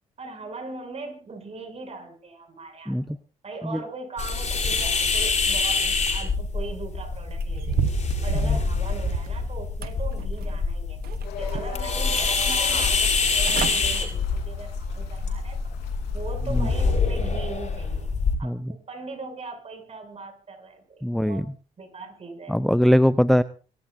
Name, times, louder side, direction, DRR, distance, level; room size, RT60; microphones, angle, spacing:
voice 1, 0.2-3.0 3.4-7.8 8.2-11.0 11.4-15.6 16.1-18.1 18.4-21.5 21.8-22.6, right 4 dB, 40° right, 3 dB, 7.8 m, -39 dB
sound 1, 4.2-18.3, left 4 dB, 45° left, 7.8 m, -25 dB
sound 2, 7.4-9.4 9.8-10.6 11.0-11.9 12.3-12.4 13.1-13.2 13.4-13.8 14.2-14.5 15.0-15.1, right 10 dB, 65° right, 1.2 m, -31 dB
sound 3, 11.2-17.0, left 7 dB, 80° left, 4.0 m, -40 dB
voice 2, 21.0-21.4 22.5-23.4, equal, ahead, 14 dB, 0.6 m, -20 dB
26.5 x 14.5 x 2.7 m, 0.37 s
supercardioid pair, 60°, 17 cm